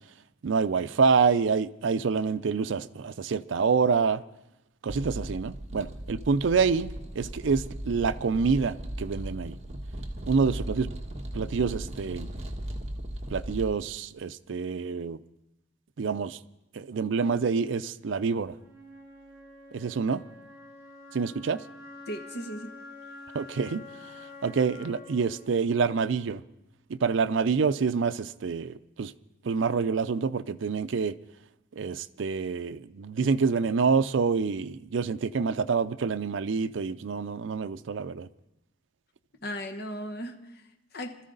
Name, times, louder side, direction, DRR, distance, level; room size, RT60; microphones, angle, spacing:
voice 1, 0.4-4.2 4.8-9.6 10.3-10.9 11.3-12.3 13.3-15.2 16.0-16.4 16.7-18.6 19.7-20.2 21.1-21.6 23.3-23.8 24.4-26.4 26.9-29.1 29.4-31.2 31.8-38.3, right 5 dB, 80° right, 0.5 m, -27 dB
sound 1, 4.9-13.7, right 1 dB, 35° right, 1.5 m, -37 dB
Wind instrument woodwind instrument, 18.5-26.5, left 2 dB, 20° right, 7.9 m, -48 dB
voice 2, 22.1-22.7 39.4-40.6 40.9-41.2, equal, 60° left, 1.2 m, -36 dB
21.0 x 13.5 x 3.9 m
head